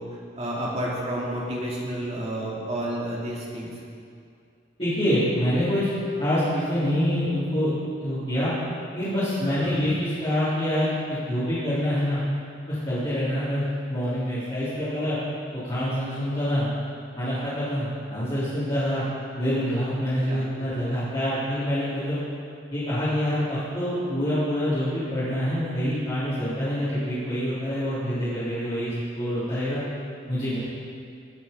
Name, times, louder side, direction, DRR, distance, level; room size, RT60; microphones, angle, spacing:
voice 1, 0.0-3.7 9.4-9.8 20.3-20.5, right 1 dB, 30° right, -5 dB, 2.6 m, -31 dB
voice 2, 4.8-5.9 6.2-7.7 8.0-8.5 8.9-12.2 12.7-15.2 15.6-16.7 17.2-19.0 19.3-22.2 22.7-29.8 30.3-30.6, equal, 30° left, -14 dB, 3.7 m, -26 dB
19.5 x 7.4 x 5.4 m, 2.4 s
head